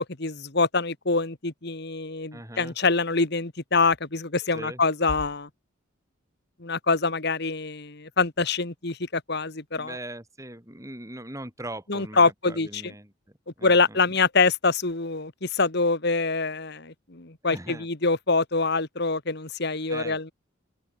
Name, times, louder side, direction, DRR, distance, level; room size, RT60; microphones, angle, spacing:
voice 1, 0.2-5.5 6.6-10.0 11.9-12.9 13.6-20.3, left 3 dB, 55° left, 1.9 m, -25 dB
voice 2, 2.3-2.7 4.5-4.8 9.8-14.2 17.5-17.9 19.9-20.2, right 1 dB, 15° right, 4.9 m, -40 dB
open air
head